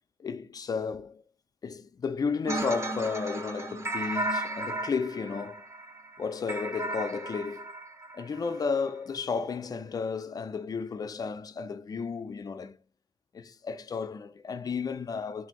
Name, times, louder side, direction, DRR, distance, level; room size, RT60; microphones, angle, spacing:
voice 1, 0.2-1.2 1.6-5.6 6.2-7.7 8.1-12.8 13.3-15.5, left 5 dB, 30° left, 0.4 m, -33 dB
sound 1, 2.5-8.6, right 2 dB, 20° right, 0.5 m, -35 dB
3.4 x 2.5 x 4.5 m
wide cardioid pair, 180°, 12 cm